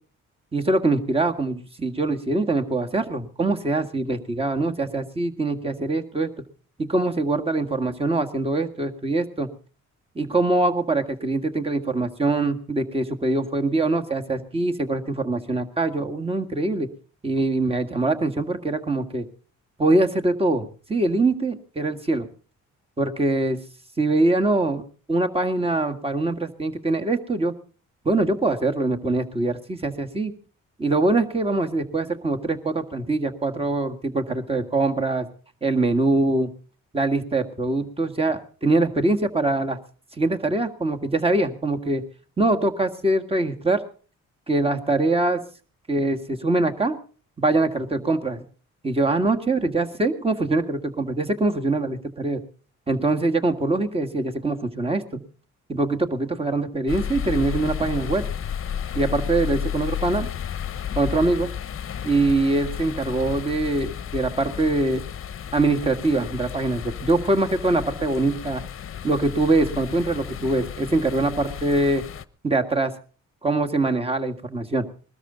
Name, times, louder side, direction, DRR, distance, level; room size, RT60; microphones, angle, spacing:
voice 1, 0.5-6.3 6.8-9.5 10.2-16.9 17.2-19.3 19.8-22.3 23.0-23.6 24.0-24.8 25.1-27.5 28.1-30.3 30.8-35.3 35.6-36.5 36.9-39.8 40.2-42.0 42.4-43.8 44.5-45.4 45.9-47.0 47.4-48.4 48.8-52.4 52.9-55.2 55.7-58.3 58.9-60.3 61.0-61.5 62.0-65.0 65.5-68.6 69.0-72.0 72.4-72.9 73.4-74.8, right 2 dB, 20° right, 5 dB, 1.8 m, -23 dB
sound 1, 56.9-72.2, left 8 dB, 45° left, 0.9 m, -32 dB
21.0 x 13.0 x 3.9 m, 0.39 s
cardioid pair, 90°, 30 cm